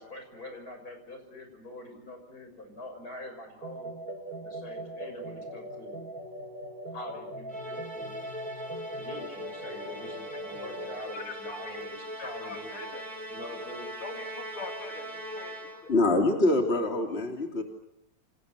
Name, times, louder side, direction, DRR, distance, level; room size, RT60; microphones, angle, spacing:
voice 1, 0.0-3.9 4.4-6.0 6.9-8.2 9.0-13.0 13.3-13.9, left 1 dB, 45° left, 5 dB, 6.9 m, -44 dB
sound 1, 3.6-11.0, right 1 dB, 40° right, 2.8 m, -40 dB
Musical instrument, 7.5-16.0, equal, 15° right, 4.2 m, -41 dB
voice 2, 11.1-11.8 12.2-13.0 14.0-15.9, left 4 dB, 85° left, 4 dB, 2.9 m, -43 dB
voice 3, 15.9-17.6, left 2 dB, 30° left, 2 dB, 3.0 m, -24 dB
29.0 x 28.0 x 6.7 m, 0.79 s
omnidirectional pair, 2.3 m